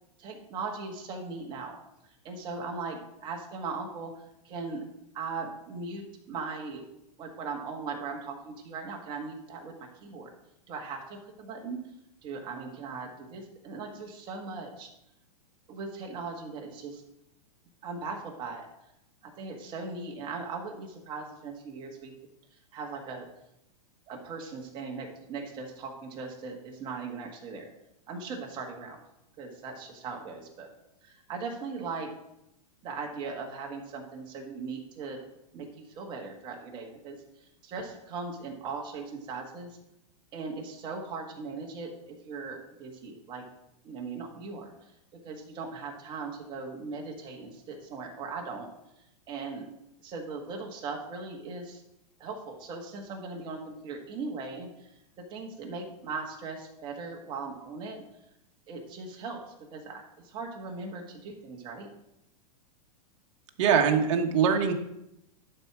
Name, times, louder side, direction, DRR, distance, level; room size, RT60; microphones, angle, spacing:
voice 1, 0.2-1.8 2.2-4.8 5.1-6.8 7.2-10.3 10.7-11.8 12.2-14.9 15.7-17.0 17.8-18.7 19.2-22.1 22.5-23.3 24.1-27.7 28.1-29.0 29.4-30.7 31.0-32.1 32.8-35.2 35.5-39.8 40.3-43.5 43.8-44.7 45.1-48.7 49.3-49.7 50.0-51.8 52.2-58.0 58.7-61.9, right 4 dB, 25° right, 1 dB, 1.6 m, -39 dB
voice 2, 63.6-64.7, right 7 dB, 50° right, 4 dB, 1.4 m, -23 dB
11.0 x 4.5 x 6.1 m, 0.83 s
supercardioid pair, 160°, 20 cm